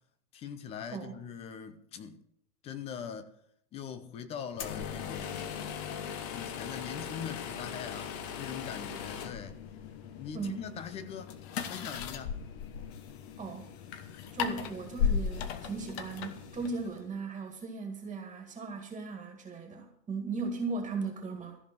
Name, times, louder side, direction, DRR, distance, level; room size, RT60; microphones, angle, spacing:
voice 1, 0.3-2.2 2.6-3.3 3.7-5.6 6.3-9.6 10.1-11.4 11.7-12.5, left 7 dB, 15° left, 0.5 m, -42 dB
sound 1, 4.5-17.1, left 7 dB, 40° left, 1.3 m, -37 dB
voice 2, 13.4-13.7 14.3-21.6, right 4 dB, 10° right, 2.0 m, -37 dB
14.5 x 5.2 x 9.2 m
hypercardioid pair, 120°, 48 cm